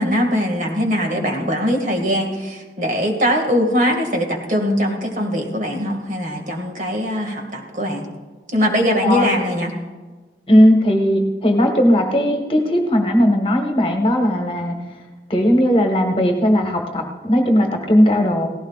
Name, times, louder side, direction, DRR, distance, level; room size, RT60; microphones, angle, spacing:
voice 1, 0.0-8.1 8.5-9.7, equal, 45° right, 1 dB, 2.0 m, -21 dB
voice 2, 10.5-14.7 15.3-18.5, equal, 30° left, 3 dB, 1.4 m, -17 dB
18.0 x 15.5 x 2.4 m, 1.3 s
head